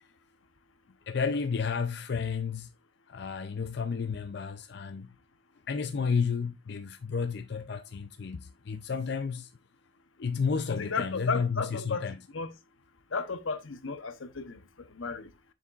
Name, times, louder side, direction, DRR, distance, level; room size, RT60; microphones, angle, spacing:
voice 1, 1.1-2.7 3.1-5.1 5.7-9.5 10.2-12.2, left 5 dB, 55° left, 0.5 m, -32 dB
voice 2, 10.7-12.1 12.3-12.5 13.1-14.6 15.0-15.3, left 4 dB, 85° left, 0.9 m, -33 dB
7.0 x 6.9 x 2.4 m
head